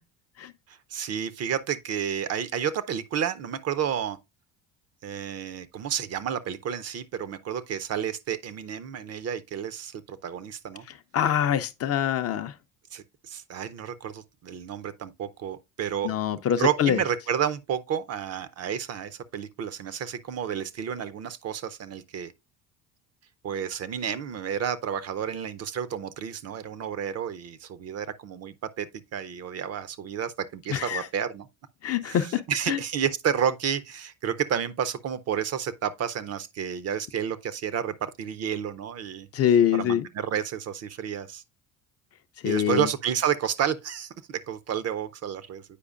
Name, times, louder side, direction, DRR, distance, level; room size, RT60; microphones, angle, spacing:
voice 1, 0.7-4.2 5.0-10.8 12.9-16.1 16.6-22.3 23.4-31.5 32.1-39.3 39.8-41.4 42.4-45.6, right 8 dB, 40° right, 0.5 m, -31 dB
voice 2, 11.1-12.5 16.0-17.0 30.7-31.1 31.8-32.4 32.7-32.8 39.3-40.1 42.4-42.9, left 9 dB, 40° left, 0.5 m, -24 dB
8.3 x 4.8 x 2.4 m
hypercardioid pair, 70°, 40 cm